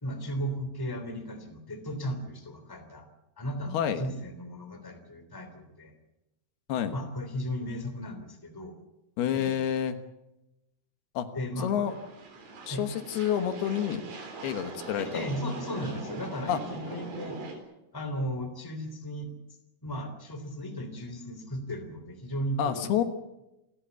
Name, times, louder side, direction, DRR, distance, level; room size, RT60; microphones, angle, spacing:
voice 1, 0.0-3.1 3.4-5.9 6.9-8.8 9.3-9.6 11.3-11.8 12.7-12.8 15.0-17.4 17.9-19.3 19.8-23.0, equal, 5° left, 7 dB, 2.5 m, -36 dB
voice 2, 9.2-10.0 11.1-11.3 11.6-11.9 12.7-14.0 14.4-15.2 16.5-16.6 22.6-23.0, left 9 dB, 75° left, 8 dB, 3.3 m, -28 dB
sound 1, 11.9-17.6, right 3 dB, 65° right, 5.6 m, -42 dB
28.5 x 14.0 x 8.3 m, 0.96 s
omnidirectional pair, 4.6 m